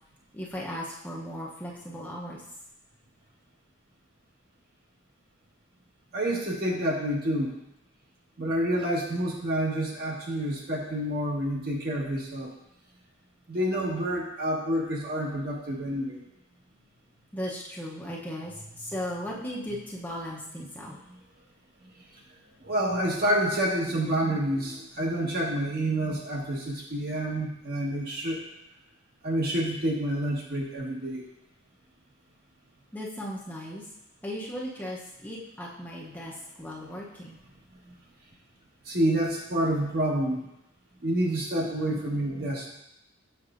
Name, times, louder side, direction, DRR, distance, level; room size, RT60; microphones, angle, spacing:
voice 1, 0.3-2.4 17.3-21.0 32.9-33.8 34.2-37.4, equal, 10° left, -4 dB, 0.7 m, -37 dB
voice 2, 6.1-7.5 8.4-12.5 13.5-16.2 22.6-28.4 29.2-31.3 38.9-40.5 41.0-42.7, right 1 dB, 50° right, -2 dB, 1.2 m, -28 dB
7.2 x 5.8 x 2.5 m, 0.84 s
head